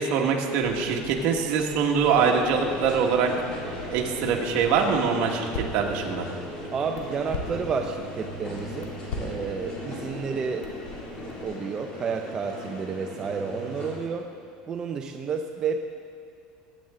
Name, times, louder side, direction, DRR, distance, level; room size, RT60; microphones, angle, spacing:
voice 1, 0.0-3.3 3.9-6.2, right 6 dB, 60° right, 1 dB, 1.7 m, -24 dB
Crackle, 0.6-11.4, left 3 dB, 80° left, 1.8 m, -42 dB
sound 1, 2.1-14.0, left 1 dB, 40° left, 3.8 m, -38 dB
voice 2, 6.7-10.7 11.2-14.3 14.7-15.9, right 5 dB, 25° right, 3 dB, 0.6 m, -31 dB
22.0 x 9.4 x 3.8 m, 2.5 s
cardioid pair, 150°, 3 cm